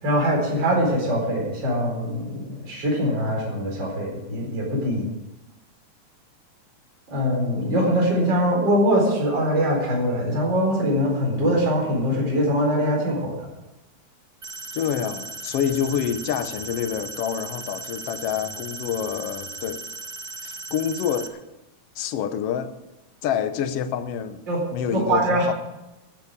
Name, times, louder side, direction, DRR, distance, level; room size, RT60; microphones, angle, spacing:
voice 1, 0.0-5.1 7.1-13.5 24.5-24.6 24.9-25.5, equal, 35° right, 5.0 m, -22 dB
sound 1, 14.4-21.3, right 3 dB, 75° right, 0.5 m, -37 dB
voice 2, 14.7-19.8 20.4-21.4 21.9-22.7 23.2-24.4 24.7-25.5, left 8 dB, 65° left, 1.7 m, -27 dB
14.5 x 8.5 x 8.9 m
omnidirectional pair, 3.5 m